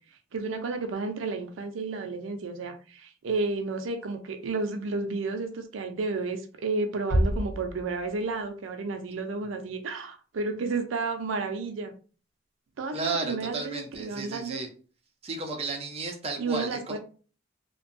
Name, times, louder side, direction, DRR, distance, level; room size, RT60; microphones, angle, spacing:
voice 1, 0.3-11.9 12.8-14.6 16.4-17.0, right 3 dB, 85° right, 5 dB, 0.4 m, -32 dB
Bass drum, 7.1-8.5, equal, 70° left, 1.2 m, -28 dB
voice 2, 12.9-14.7 15.2-17.0, right 3 dB, 30° right, 2 dB, 0.5 m, -33 dB
2.6 x 2.2 x 2.5 m, 0.39 s
head